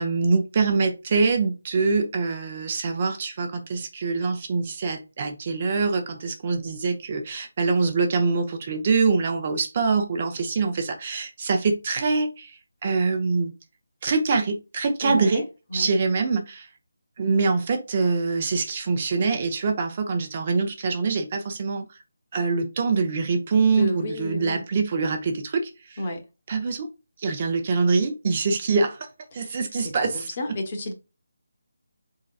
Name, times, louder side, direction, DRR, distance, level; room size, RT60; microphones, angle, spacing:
voice 1, 0.0-13.5 14.0-15.4 15.7-16.7 17.2-21.9 22.3-26.0 26.5-26.9 27.2-29.1 29.3-30.3, right 4 dB, 35° right, 0.7 m, -24 dB
voice 2, 15.0-15.4 15.7-15.9 23.7-24.6 26.0-26.2 29.3-29.5 29.8-30.9, left 1 dB, 35° left, 1.0 m, -31 dB
4.5 x 3.7 x 2.4 m
figure-of-eight pair, 165°, 0 cm